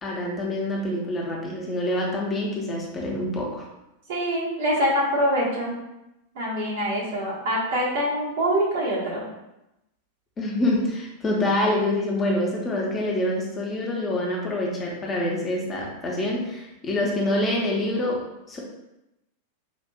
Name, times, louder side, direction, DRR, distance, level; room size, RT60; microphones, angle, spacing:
voice 1, 0.0-3.7 10.4-18.6, left 1 dB, 20° left, -2 dB, 0.8 m, -26 dB
voice 2, 4.1-5.8 6.3-9.2, equal, 55° right, -5 dB, 1.2 m, -24 dB
5.0 x 2.5 x 2.3 m, 0.91 s
figure-of-eight pair, 90°, 0 cm